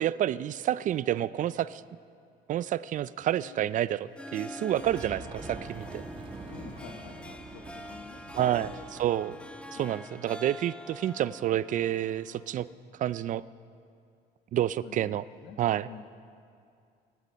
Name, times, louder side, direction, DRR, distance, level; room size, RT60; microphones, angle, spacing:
voice 1, 0.0-1.8 2.5-6.0 8.3-9.4 9.7-12.7 13.0-13.4 14.5-15.2 15.6-16.0, right 11 dB, 50° right, 18 dB, 0.4 m, -29 dB
voice 2, 3.4-3.7 6.5-8.9 9.2-9.4 9.7-10.0 14.8-15.1 15.4-15.6 15.9-16.0, left 7 dB, 75° left, 3 dB, 1.1 m, -49 dB
Harp, 4.0-12.7, left 1 dB, 5° left, 0.8 m, -45 dB
sound 1, 4.7-9.7, right 3 dB, 30° right, 1.8 m, -45 dB
18.0 x 12.5 x 5.4 m, 2.4 s
cardioid pair, 110°, 17 cm